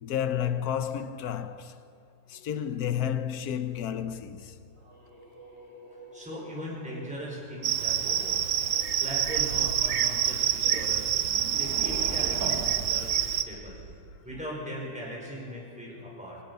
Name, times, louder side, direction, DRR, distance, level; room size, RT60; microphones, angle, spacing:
voice 1, 0.0-1.8 2.3-4.6, left 9 dB, 60° left, 1.3 m, -31 dB
sound 1, 4.4-9.2, right 1 dB, 35° right, 7.2 m, -51 dB
voice 2, 6.1-11.1 11.6-13.8 14.2-16.4, equal, 5° right, 5.4 m, -39 dB
Cricket, 7.6-13.4, right 10 dB, 75° right, 1.5 m, -27 dB
sound 2, 9.8-10.0 10.6-14.4, right 3 dB, 55° right, 2.1 m, -40 dB
25.0 x 19.0 x 5.6 m
omnidirectional pair, 1.9 m